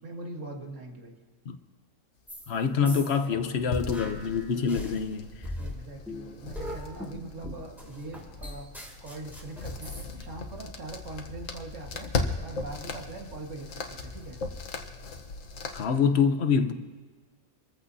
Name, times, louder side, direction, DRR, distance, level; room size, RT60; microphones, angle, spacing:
voice 1, 0.0-1.2 2.8-3.6 5.6-8.7 9.0-14.4, right 2 dB, 65° right, 2.0 m, -42 dB
sound 1, 2.3-2.5 2.9-5.0 5.4-10.0, left 1 dB, ahead, 2.6 m, -40 dB
voice 2, 2.5-5.3 15.7-16.7, left 6 dB, 55° left, 1.1 m, -25 dB
sound 2, 3.7-15.8, left 3 dB, 75° left, 1.5 m, -38 dB
25.5 x 14.5 x 2.7 m
omnidirectional pair, 1.4 m